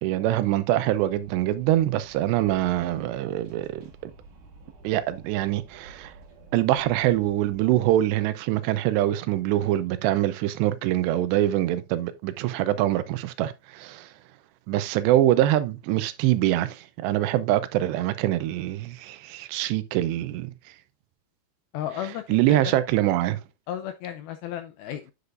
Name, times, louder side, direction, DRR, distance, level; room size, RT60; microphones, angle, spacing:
voice 1, 0.0-4.1 4.8-6.1 6.5-14.1 14.7-20.5 22.3-23.4, right 14 dB, 85° right, 2.9 m, -24 dB
Wind, 0.8-8.1, right 3 dB, 55° right, 3.0 m, -51 dB
voice 2, 21.7-22.8 23.7-25.1, left 10 dB, 85° left, 2.2 m, -34 dB
9.6 x 6.7 x 2.4 m
omnidirectional pair, 4.9 m